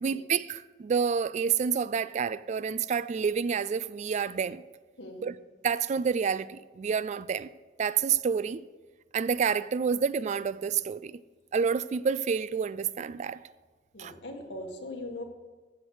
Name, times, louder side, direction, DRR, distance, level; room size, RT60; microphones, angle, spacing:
voice 1, 0.0-4.6 5.2-5.4 5.6-7.5 7.8-8.6 9.1-11.2 11.5-13.5 14.0-14.1, right 6 dB, 40° right, 0.3 m, -28 dB
voice 2, 5.0-5.3 13.9-15.2, left 1 dB, 85° left, 1.8 m, -40 dB
14.0 x 8.1 x 4.7 m
head